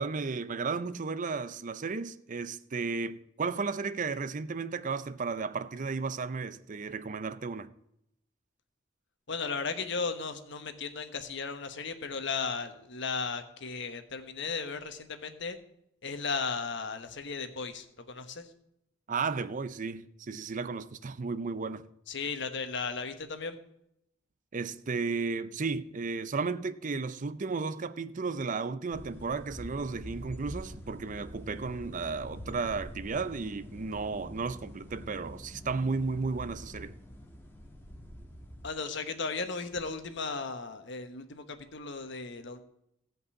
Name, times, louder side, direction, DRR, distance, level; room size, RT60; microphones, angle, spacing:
voice 1, 0.0-7.7 19.1-21.8 24.5-37.0, right 4 dB, 40° right, 0.5 m, -34 dB
voice 2, 9.3-15.6 16.0-18.5 22.1-23.6 38.6-42.6, left 4 dB, 60° left, 1.2 m, -35 dB
sound 1, 28.9-38.7, equal, 10° left, 1.4 m, -46 dB
16.0 x 5.4 x 8.4 m
head